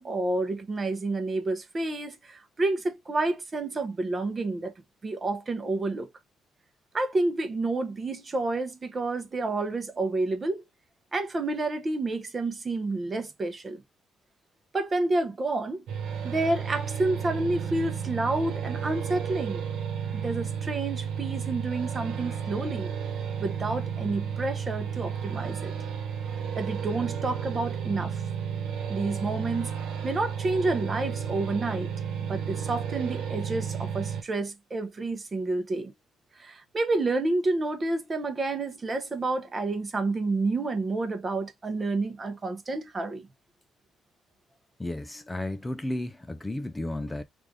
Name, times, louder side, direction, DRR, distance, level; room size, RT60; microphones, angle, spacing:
voice 1, 0.0-4.7 5.0-6.1 6.9-10.6 11.1-13.8 14.7-15.8 16.2-19.6 20.1-22.9 23.4-25.7 26.5-28.2 28.9-29.7 30.0-31.9 32.3-35.9 36.4-43.3, right 2 dB, 35° right, 0.8 m, -29 dB
sound 1, 15.9-34.2, right 7 dB, 85° right, 1.1 m, -32 dB
voice 2, 44.8-47.2, left 1 dB, 15° left, 0.4 m, -33 dB
3.2 x 2.6 x 3.6 m
cardioid pair, 90°, 0 cm